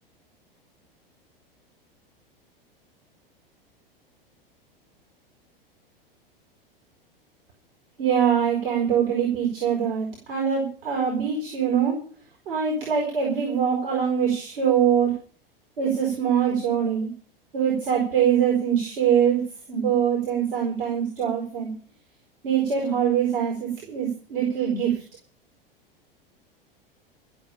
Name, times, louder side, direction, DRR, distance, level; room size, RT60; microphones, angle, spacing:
voice 1, 8.0-12.0 12.5-15.1 15.8-17.1 17.5-21.7 22.4-25.0, right 8 dB, 70° right, -1 dB, 5.5 m, -23 dB
14.5 x 7.3 x 8.9 m, 0.42 s
figure-of-eight pair, 90°, 29 cm